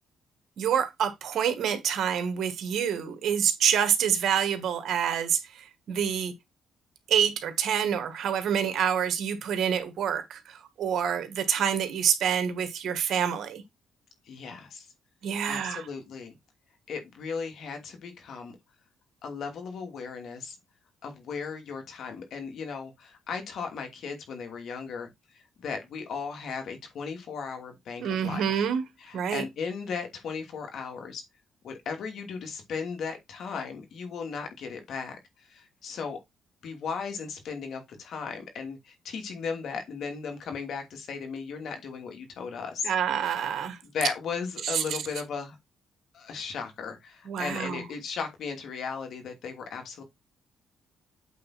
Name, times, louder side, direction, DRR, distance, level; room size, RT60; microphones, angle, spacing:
voice 1, 0.6-6.3 7.1-13.6 15.2-15.9 28.0-28.8 29.1-29.4 42.8-43.8 44.6-44.8 47.3-47.8, right 8 dB, 70° right, 1.8 m, -27 dB
voice 2, 14.3-14.9 15.4-16.3 16.9-18.6 19.2-20.6 21.0-25.1 25.3-28.7 29.0-31.2 31.6-36.2 36.6-42.9 43.8-45.6 46.1-50.0, left 5 dB, 65° left, 2.8 m, -36 dB
8.3 x 4.1 x 4.3 m
cardioid pair, 90°, 0 cm